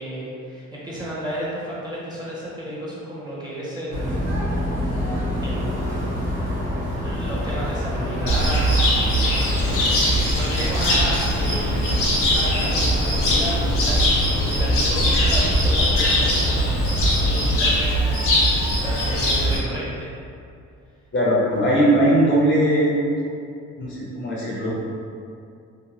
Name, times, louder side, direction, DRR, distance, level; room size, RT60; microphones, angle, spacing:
voice 1, 0.0-4.3 4.7-5.0 5.4-6.1 7.0-8.7 9.2-16.6 16.9-18.2 18.6-20.1, equal, 15° right, -8 dB, 0.8 m, -33 dB
sound 1, 3.9-17.6, left 1 dB, 50° right, 1.3 m, -27 dB
Cricket, 8.3-19.6, equal, 85° left, 0.8 m, -21 dB
voice 2, 21.1-23.0 23.8-24.7, right 1 dB, 40° left, -5 dB, 0.7 m, -19 dB
2.8 x 2.1 x 2.9 m, 2.4 s
cardioid pair, 90°, 30 cm